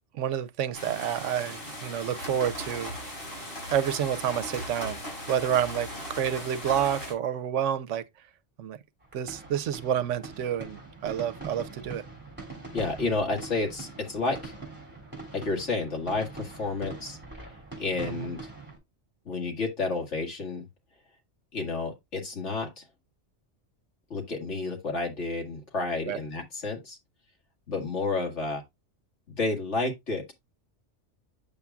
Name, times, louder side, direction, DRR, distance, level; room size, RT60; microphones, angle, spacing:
voice 1, 0.1-2.9 3.7-5.0 5.3-8.0 8.6-8.8 9.1-12.0 18.0-18.3 26.1-26.2, right 9 dB, 85° right, 1.0 m, -29 dB
sound 1, 0.7-7.1, equal, 55° left, 5.2 m, -38 dB
sound 2, 9.0-18.8, right 3 dB, 10° right, 3.4 m, -43 dB
voice 2, 12.7-14.6 15.3-17.2 17.4-17.5 17.8-18.4 19.3-20.7 21.5-22.8 24.1-27.0 27.7-28.6 29.3-30.2, left 3 dB, 75° left, 2.2 m, -30 dB
8.4 x 7.1 x 2.2 m
omnidirectional pair, 1.2 m